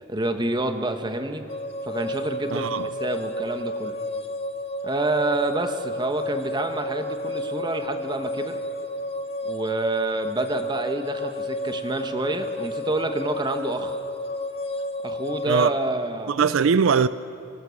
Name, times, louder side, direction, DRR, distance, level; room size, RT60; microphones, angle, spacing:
voice 1, 0.1-1.4 1.8-4.0 4.8-8.6 9.4-14.0 15.0-16.3, right 2 dB, 20° right, 1.2 m, -28 dB
sound 1, 1.5-15.5, left 1 dB, 30° left, 0.8 m, -31 dB
voice 2, 2.5-2.9 15.5-15.7 16.3-17.1, right 6 dB, 75° right, 0.4 m, -21 dB
25.0 x 14.5 x 7.1 m
head